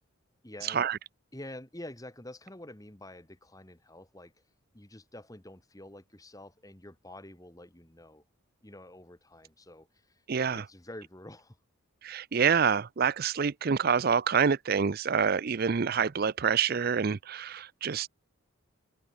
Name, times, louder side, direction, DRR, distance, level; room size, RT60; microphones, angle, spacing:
voice 1, 0.4-0.9 1.3-4.3 4.7-8.2 8.6-11.6, left 1 dB, 15° left, 1.9 m, -47 dB
voice 2, 10.3-10.6 12.0-18.1, right 6 dB, 45° right, 0.5 m, -27 dB
head